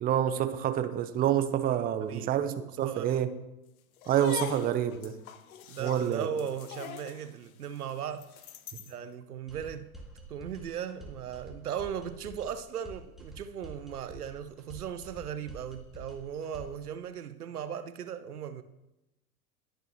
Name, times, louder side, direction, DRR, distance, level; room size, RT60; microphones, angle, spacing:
voice 1, 0.0-3.3 4.1-5.2 5.8-6.3, right 10 dB, 20° right, 0.6 m, -28 dB
voice 2, 2.8-3.3 5.7-8.3 8.9-9.9 10.3-18.6, right 8 dB, 75° right, 0.8 m, -37 dB
sound 1, 4.0-9.0, left 10 dB, 65° left, 1.0 m, -43 dB
sound 2, 9.5-16.9, right 2 dB, ahead, 2.0 m, -48 dB
20.0 x 6.9 x 3.0 m
figure-of-eight pair, 90°, 45 cm